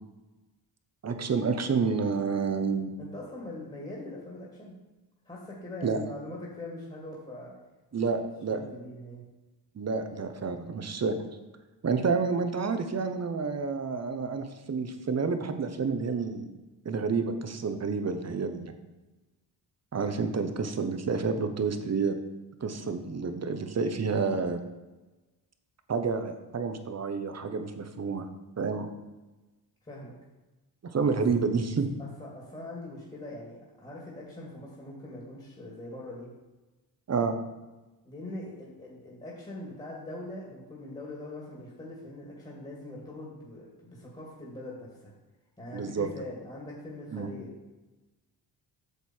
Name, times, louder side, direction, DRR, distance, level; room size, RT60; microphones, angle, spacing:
voice 1, 1.0-2.9 5.8-6.0 7.9-8.6 9.7-11.2 11.8-16.5 16.8-18.7 19.9-22.2 22.6-24.6 25.9-28.3 28.6-28.9 30.8-31.9 37.1-37.4 45.7-46.1 47.1-47.3, right 5 dB, 40° right, 8 dB, 1.0 m, -29 dB
voice 2, 3.0-4.8 5.3-7.5 7.9-8.1 8.5-9.2 29.8-30.2 31.1-31.2 32.0-36.3 38.0-45.1 45.6-47.5, left 1 dB, 15° left, -4 dB, 2.3 m, -42 dB
8.3 x 6.8 x 4.5 m, 1.1 s
cardioid pair, 90°, 41 cm